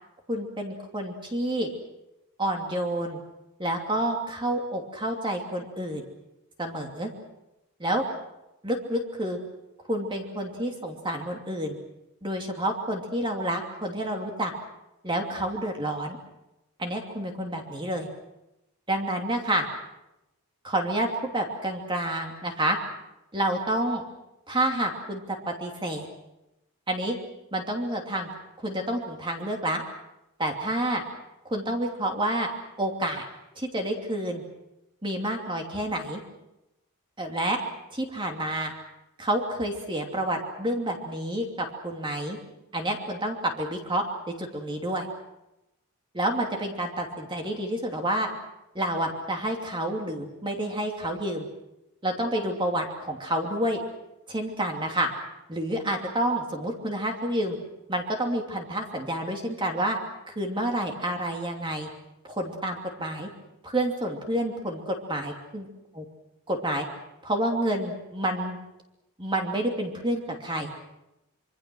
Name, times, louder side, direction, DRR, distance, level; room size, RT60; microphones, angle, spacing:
voice 1, 0.3-1.7 2.4-3.2 3.6-6.1 6.6-7.1 7.8-8.0 8.6-9.4 9.9-11.8 12.2-14.5 15.0-16.2 16.8-18.1 18.9-19.7 20.6-21.1 21.3-22.8 23.3-24.0 24.5-26.1 26.9-27.2 27.5-28.3 28.6-29.8 30.4-31.0 31.5-32.5 32.8-33.2 33.6-34.4 35.0-36.2 37.2-37.6 37.9-38.7 39.2-42.4 42.7-44.0 44.4-45.1 46.1-48.3 48.7-51.5 52.0-53.8 54.3-55.1 55.5-57.6 57.9-60.0 60.3-61.9 62.2-63.3 63.6-65.7 66.5-66.9 67.2-68.6 69.2-70.7, right 1 dB, 20° right, 2 dB, 2.7 m, -29 dB
26.0 x 24.5 x 6.3 m, 0.92 s
head